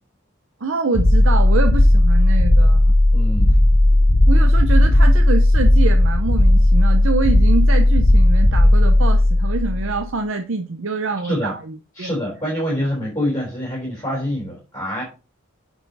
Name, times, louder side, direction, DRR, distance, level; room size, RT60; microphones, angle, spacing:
voice 1, 0.6-2.9 4.3-12.1, right 3 dB, 70° right, 0.7 m, -25 dB
sound 1, 0.9-10.0, left 1 dB, 55° left, 1.5 m, -14 dB
voice 2, 3.1-3.5 11.3-11.5 11.9-15.0, equal, 15° left, 3.7 m, -25 dB
9.2 x 4.8 x 4.0 m
head